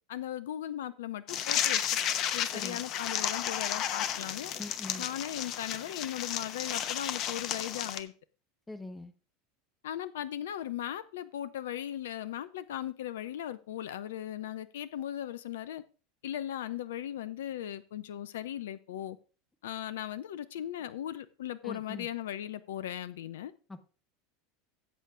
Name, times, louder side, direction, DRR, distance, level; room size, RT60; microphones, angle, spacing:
voice 1, 0.1-2.0 2.3-4.5 5.0-8.1 9.8-15.8 16.2-19.2 19.6-23.5, left 11 dB, 70° left, 0.5 m, -38 dB
sound 1, 1.3-8.0, left 10 dB, 45° left, 0.9 m, -33 dB
voice 2, 2.5-2.8 4.6-5.1 8.7-9.1 21.6-22.1 23.7-23.8, left 2 dB, 10° left, 1.0 m, -42 dB
16.0 x 8.1 x 2.5 m
figure-of-eight pair, 80°, 0 cm